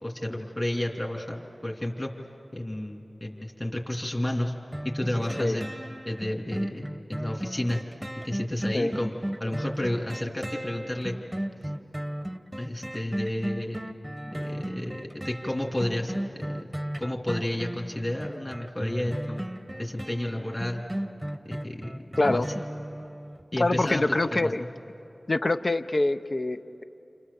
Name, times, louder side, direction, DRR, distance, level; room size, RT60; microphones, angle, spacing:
voice 1, 0.0-2.1 2.5-4.5 4.8-5.7 6.1-7.8 8.2-9.1 9.4-11.1 12.6-13.9 14.4-16.7 17.0-19.4 19.8-20.8 21.4-22.6 23.5-24.7, left 1 dB, 30° left, 0 dB, 2.7 m, -31 dB
sound 1, 4.7-23.4 23.9-24.0, equal, 10° right, 0.9 m, -35 dB
voice 2, 23.5-24.6 25.3-26.8, left 2 dB, 55° left, 9 dB, 0.7 m, -25 dB
29.5 x 27.5 x 7.0 m, 2.9 s
wide cardioid pair, 50°, 0 cm